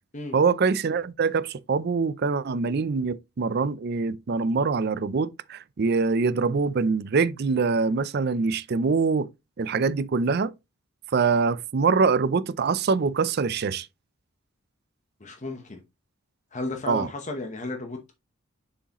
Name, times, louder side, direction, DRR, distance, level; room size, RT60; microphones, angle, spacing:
voice 1, 0.3-9.3 9.6-10.5 11.1-13.9 16.9-17.1, right 4 dB, 50° right, 0.4 m, -24 dB
voice 2, 15.2-15.8 16.5-18.1, left 2 dB, 35° left, 0.9 m, -34 dB
6.9 x 4.9 x 2.9 m
head